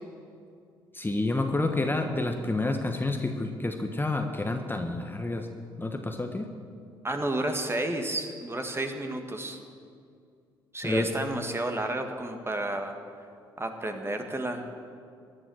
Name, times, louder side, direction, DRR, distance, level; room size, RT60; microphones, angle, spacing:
voice 1, 0.9-5.5 5.8-6.5 10.8-11.1, left 2 dB, 20° left, 5 dB, 1.3 m, -29 dB
voice 2, 7.0-9.6 10.7-13.0 13.6-14.6, right 1 dB, 20° right, 5 dB, 1.9 m, -31 dB
15.5 x 10.5 x 6.5 m, 2.3 s
hypercardioid pair, 50°, 12 cm